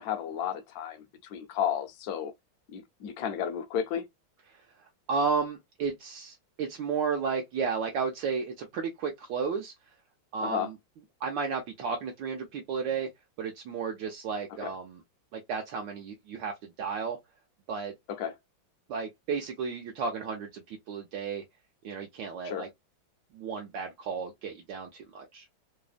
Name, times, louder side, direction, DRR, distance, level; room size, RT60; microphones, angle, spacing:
voice 1, 0.0-2.3 2.7-4.1 10.4-10.7 14.6-14.7 18.2-18.3 22.4-22.7, left 9 dB, 70° left, 0.9 m, -33 dB
voice 2, 5.1-9.7 10.3-10.7 11.2-13.1 13.4-15.0 15.3-17.2 17.7-17.9 18.9-21.4 21.8-22.7 23.3-25.5, right 5 dB, 75° right, 1.2 m, -33 dB
3.3 x 2.0 x 2.4 m
omnidirectional pair, 2.1 m